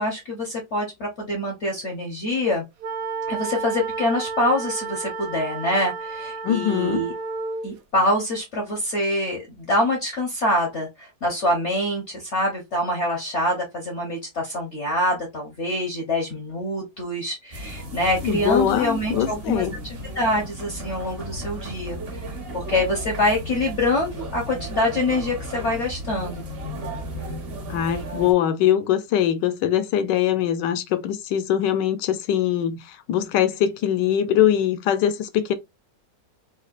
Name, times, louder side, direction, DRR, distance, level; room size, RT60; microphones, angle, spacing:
voice 1, 0.0-2.6 3.3-7.1 7.6-22.0 22.5-26.4, left 1 dB, 55° left, 0.8 m, -25 dB
sound 1, 2.8-7.7, right 4 dB, 70° right, 1.1 m, -31 dB
voice 2, 6.4-7.1 18.2-19.8 27.7-35.5, left 10 dB, 75° left, 1.1 m, -22 dB
sound 2, 17.5-28.3, right 1 dB, 40° right, 0.9 m, -34 dB
4.2 x 2.3 x 2.4 m
omnidirectional pair, 2.0 m